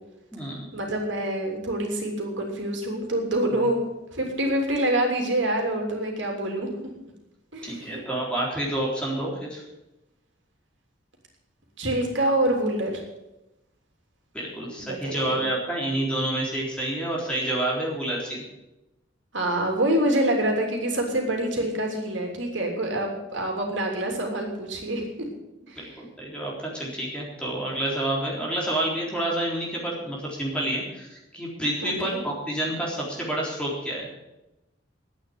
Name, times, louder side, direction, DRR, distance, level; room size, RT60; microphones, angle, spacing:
voice 1, 0.7-3.8 4.1-6.7 7.5-7.9 11.8-13.0 14.8-15.3 19.3-25.3 25.6-25.8 31.8-32.2, right 1 dB, 75° right, 2 dB, 3.1 m, -26 dB
voice 2, 7.6-9.6 14.3-18.4 25.8-34.1, right 1 dB, 5° left, -4 dB, 3.8 m, -29 dB
11.0 x 9.0 x 9.2 m, 0.96 s
head